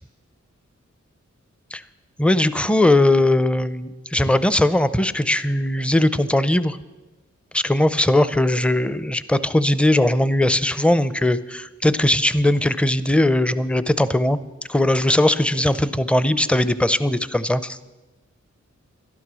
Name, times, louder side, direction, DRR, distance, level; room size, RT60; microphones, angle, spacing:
voice 1, 2.2-6.8 7.5-14.4 14.7-17.8, left 1 dB, 5° left, 14 dB, 0.6 m, -19 dB
13.0 x 11.5 x 6.2 m, 1.1 s
wide cardioid pair, 60°, 29 cm